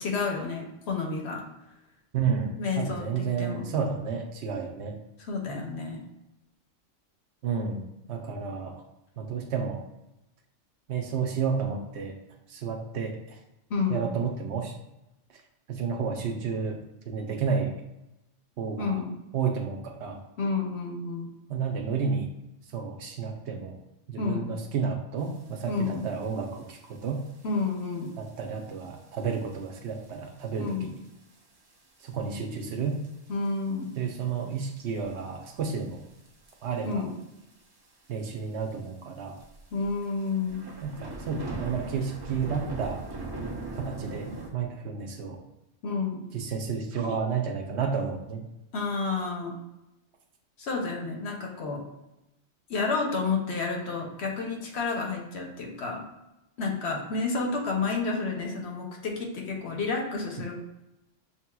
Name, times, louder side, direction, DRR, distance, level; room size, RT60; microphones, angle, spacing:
voice 1, 0.0-1.4 2.4-3.7 5.3-6.0 13.7-14.1 18.8-19.1 20.4-21.3 24.2-24.5 25.7-26.1 27.4-28.1 30.6-30.9 33.3-33.9 36.8-37.2 39.7-40.6 45.8-46.2 48.7-49.6 50.6-51.8 52.7-56.0 56.6-60.6, left 4 dB, 65° left, 1 dB, 0.9 m, -30 dB
voice 2, 2.1-5.0 7.4-7.8 8.1-8.8 9.2-9.8 10.9-12.1 12.5-13.4 13.9-14.8 15.7-17.7 18.6-19.0 19.3-20.2 21.5-22.3 22.7-23.8 24.1-27.2 28.2-30.9 32.0-33.0 34.0-36.0 36.6-37.0 38.1-39.4 40.8-43.2 43.8-45.4 46.3-48.4, right 6 dB, 65° right, 3 dB, 0.9 m, -31 dB
sound 1, 25.9-26.0 26.2-26.6 27.3-27.4 28.1-28.2 28.8-28.9 29.2-29.3 29.5-29.6 30.7-31.0 31.4-31.5 32.4-32.5 33.0-33.5 33.8-34.0 34.5-35.2 36.3-36.5 36.8-36.9 37.2-37.3 37.5-37.6 38.2-38.3 38.7-38.8 39.4-44.5, right 3 dB, 35° right, 0.3 m, -38 dB
6.5 x 2.8 x 2.3 m, 0.92 s
omnidirectional pair, 1.3 m